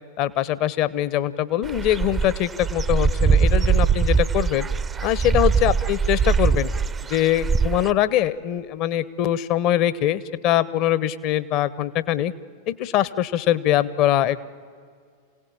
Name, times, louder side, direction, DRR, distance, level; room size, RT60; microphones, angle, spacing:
voice 1, 0.2-4.7 5.0-6.7 7.1-12.3 12.7-14.5, left 12 dB, 40° left, 17 dB, 0.9 m, -22 dB
Dog / Bird, 1.6-7.9, right 5 dB, 20° right, 0.6 m, -22 dB
26.5 x 17.5 x 8.7 m, 2.1 s
figure-of-eight pair, 90°, 0 cm